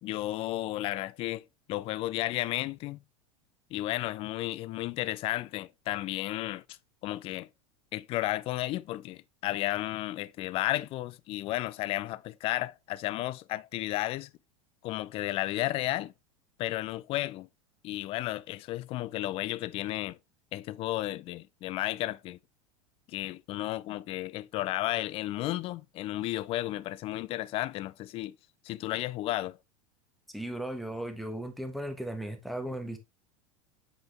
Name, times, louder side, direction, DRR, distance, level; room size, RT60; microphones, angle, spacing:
voice 1, 0.0-3.0 3.7-6.6 7.0-7.5 7.9-14.3 14.8-16.1 16.6-17.5 17.8-20.2 20.5-22.4 23.1-28.4 28.6-29.6, left 16 dB, 30° left, 0.4 m, -33 dB
voice 2, 30.3-33.0, right 1 dB, ahead, 1.3 m, -36 dB
7.8 x 5.2 x 3.3 m
figure-of-eight pair, 85°, 18 cm